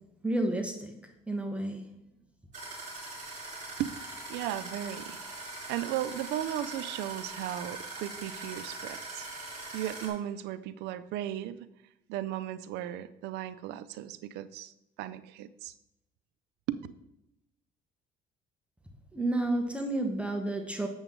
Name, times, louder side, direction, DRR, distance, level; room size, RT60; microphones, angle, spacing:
voice 1, 0.2-0.9 1.3-1.9 19.1-20.9, right 1 dB, 5° right, 4 dB, 1.0 m, -30 dB
sound 1, 2.5-10.1, right 2 dB, 45° right, 3.3 m, -42 dB
voice 2, 4.3-9.3 9.7-11.7 12.1-14.7 15.0-15.7 16.7-16.8, right 12 dB, 85° right, 14 dB, 0.5 m, -36 dB
8.0 x 7.0 x 3.7 m, 0.85 s
cardioid pair, 110°, 17 cm